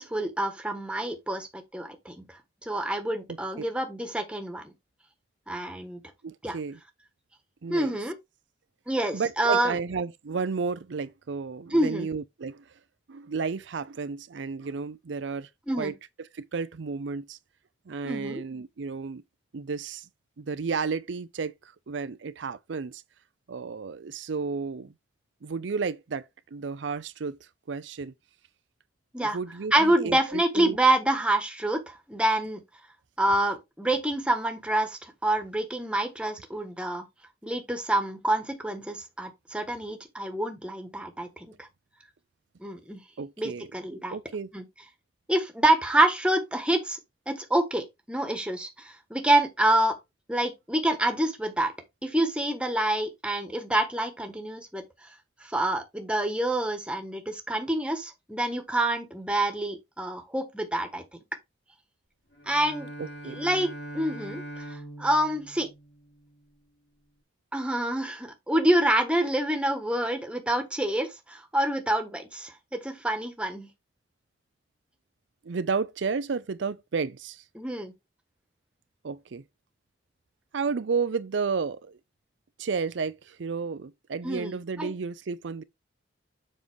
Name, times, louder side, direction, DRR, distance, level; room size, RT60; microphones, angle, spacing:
voice 1, 0.0-2.2 2.7-4.7 5.5-6.0 6.4-6.6 7.7-8.1 8.9-9.7 11.7-12.1 15.7-15.9 18.0-18.4 29.1-29.4 29.7-32.6 33.2-37.0 37.4-41.5 42.6-43.0 43.4-44.2 44.5-44.6 45.3-47.0 47.3-50.0 50.3-51.7 52.0-54.8 55.5-61.0 62.5-62.9 63.3-64.4 65.0-65.7 67.5-73.7 77.6-77.9 84.2-84.9, right 1 dB, 5° right, 1.3 m, -27 dB
voice 2, 3.3-3.7 6.2-6.8 7.6-7.9 9.1-12.7 13.1-15.5 15.8-15.9 16.3-17.4 17.9-19.2 19.5-20.1 20.4-23.0 23.5-24.9 25.4-28.1 29.2-30.8 43.2-43.8 44.1-44.5 63.0-63.4 75.4-77.4 79.0-79.4 80.5-82.0 82.6-85.6, right 5 dB, 80° right, 0.5 m, -32 dB
Bowed string instrument, 62.3-66.5, right 1 dB, 70° left, 4.4 m, -42 dB
7.3 x 5.4 x 3.5 m
head